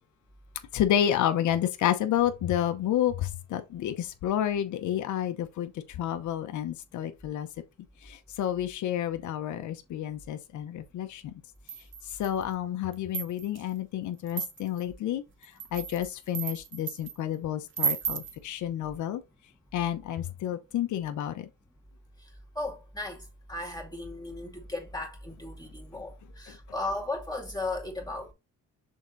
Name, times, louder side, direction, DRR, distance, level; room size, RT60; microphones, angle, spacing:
voice 1, 0.7-5.7 6.0-7.5 8.1-11.3 12.2-15.2 15.7-19.2 19.7-21.4, left 10 dB, 75° left, 0.9 m, -30 dB
sound 1, 11.7-12.4 12.9-13.6 14.3-14.8 15.4-17.2 17.7-18.4, right 6 dB, 40° right, 0.8 m, -33 dB
voice 2, 22.6-23.2 23.5-26.1 26.4-28.3, left 2 dB, 15° left, 2.4 m, -35 dB
6.4 x 3.6 x 4.0 m
cardioid pair, 90°, 30 cm